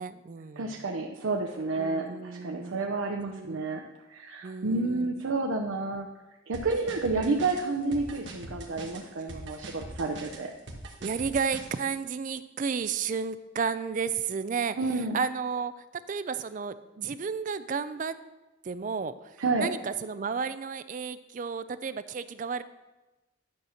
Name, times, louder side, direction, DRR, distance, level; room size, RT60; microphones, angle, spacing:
voice 1, 0.0-0.8 1.8-2.9 3.2-3.6 4.4-5.1 11.0-18.1 18.6-22.6, right 6 dB, 40° right, 13 dB, 0.3 m, -33 dB
voice 2, 0.6-6.1 6.5-10.5 14.8-15.2 19.4-19.7, right 3 dB, 80° right, 2 dB, 0.6 m, -30 dB
sound 1, 6.5-11.8, right 2 dB, 65° right, 1.1 m, -42 dB
10.5 x 4.3 x 6.3 m, 1.1 s
head